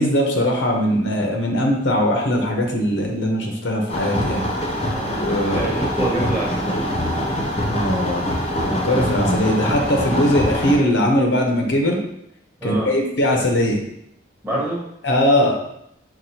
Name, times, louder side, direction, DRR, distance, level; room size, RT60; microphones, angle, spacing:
voice 1, 0.0-4.4 5.0-5.7 7.7-8.3 8.6-12.0 12.6-13.8 15.0-15.6, left 1 dB, 75° left, 1 dB, 0.7 m, -20 dB
sound 1, 3.9-10.8, equal, 30° left, 0.6 m, -24 dB
voice 2, 4.9-6.9 12.6-12.9 14.4-14.8, right 2 dB, 10° right, -6 dB, 1.0 m, -27 dB
5.9 x 2.3 x 2.7 m, 0.77 s
head